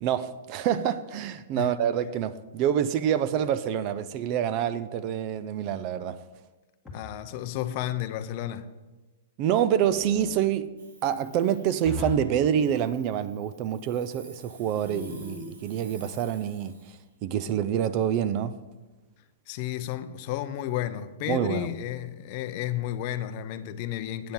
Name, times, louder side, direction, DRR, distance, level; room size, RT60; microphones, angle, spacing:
voice 1, 0.0-6.2 9.4-10.7 11.0-18.5 21.3-21.7, right 9 dB, 30° right, 0.4 m, -27 dB
sound 1, 6.8-7.3 9.9-10.3 11.8-12.4 14.8-15.6, left 3 dB, 5° left, 1.7 m, -38 dB
voice 2, 6.9-8.7 19.5-24.3, left 12 dB, 35° left, 0.5 m, -32 dB
Hiss, 10.8-17.1, right 3 dB, 85° right, 3.1 m, -53 dB
9.2 x 6.8 x 5.5 m
hypercardioid pair, 165°, 0 cm